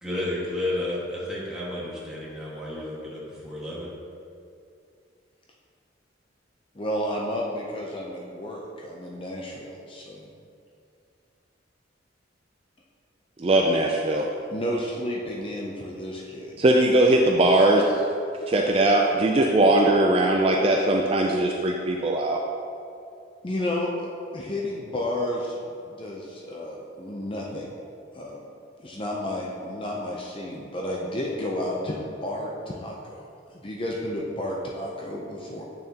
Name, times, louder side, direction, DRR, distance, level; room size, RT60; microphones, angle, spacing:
voice 1, 0.0-3.9, left 1 dB, 5° right, -8 dB, 1.7 m, -31 dB
voice 2, 6.8-10.2 14.5-16.6 23.4-25.6 25.9-27.8 28.1-28.4 28.8-32.0 32.2-33.3 33.6-35.6, left 1 dB, 30° left, -2 dB, 0.6 m, -31 dB
voice 3, 13.4-14.3 16.6-18.0 18.5-22.4, right 1 dB, 30° right, 0 dB, 0.4 m, -20 dB
8.7 x 6.4 x 2.9 m, 2.4 s
head